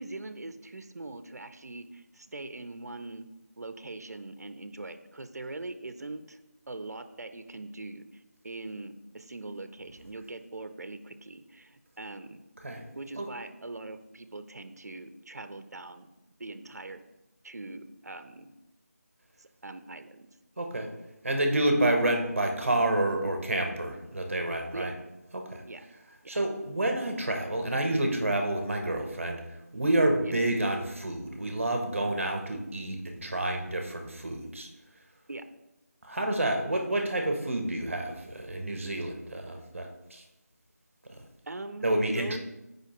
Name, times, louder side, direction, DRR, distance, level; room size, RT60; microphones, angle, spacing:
voice 1, 0.0-3.3 3.6-6.4 6.7-12.4 13.0-16.1 16.4-17.0 17.4-18.5 19.4-20.3 24.7-24.9 25.6-25.8 30.2-30.3 35.3-35.4 41.5-41.9 42.1-42.4, right 2 dB, 70° right, 9 dB, 0.6 m, -42 dB
voice 2, 20.6-20.9 21.2-24.9 25.3-25.6 26.3-29.4 29.7-34.7 36.0-40.2 41.1-41.2 41.8-42.4, right 1 dB, 50° right, 4 dB, 0.9 m, -29 dB
8.1 x 5.0 x 3.0 m, 0.98 s
figure-of-eight pair, 175°, 9 cm